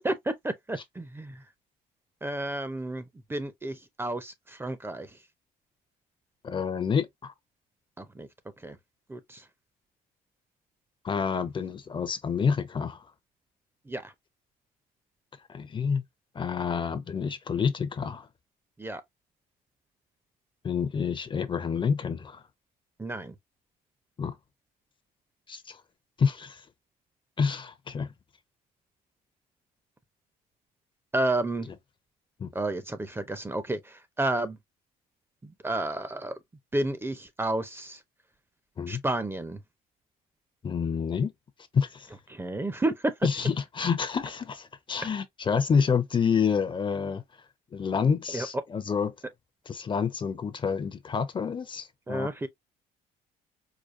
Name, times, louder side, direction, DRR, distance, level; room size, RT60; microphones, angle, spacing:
voice 1, 0.0-1.4 2.2-5.1 8.0-8.3 8.6-8.8 9.1-9.4 13.9-14.1 18.8-19.0 23.0-23.3 31.1-31.7 32.5-34.6 35.4-36.4 36.7-38.0 38.9-39.6 42.3-43.1 48.3-48.5 52.1-52.5, right 2 dB, 15° right, 0.6 m, -31 dB
voice 2, 6.4-7.3 11.0-13.0 15.5-16.0 16.3-18.3 20.6-22.4 24.2-24.4 25.5-25.8 26.2-26.6 27.4-28.1 32.4-32.5 38.8-39.0 40.6-41.3 41.7-42.1 43.2-47.2 47.7-49.1 49.7-52.3, left 6 dB, 30° left, 0.6 m, -28 dB
4.9 x 2.2 x 2.5 m
cardioid pair, 110°, 17 cm